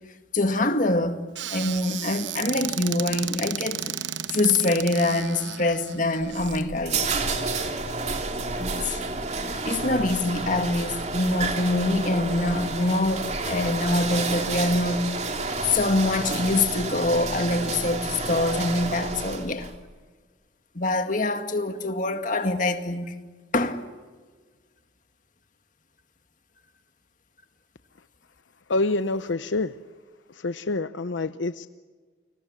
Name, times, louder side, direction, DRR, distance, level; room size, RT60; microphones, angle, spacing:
voice 1, 0.3-1.3 1.5-3.9 4.3-7.2 8.4-9.0 9.6-15.1 15.6-19.7 20.8-23.1 23.5-23.8, left 2 dB, 45° left, 2.1 m, -25 dB
Squeak / Cupboard open or close, 1.3-6.6, right 10 dB, 75° right, 0.9 m, -34 dB
sound 1, 6.2-19.8, right 3 dB, 35° right, 2.7 m, -30 dB
voice 2, 28.7-29.7 30.4-31.7, left 2 dB, 80° left, 0.8 m, -27 dB
30.0 x 21.5 x 7.3 m
head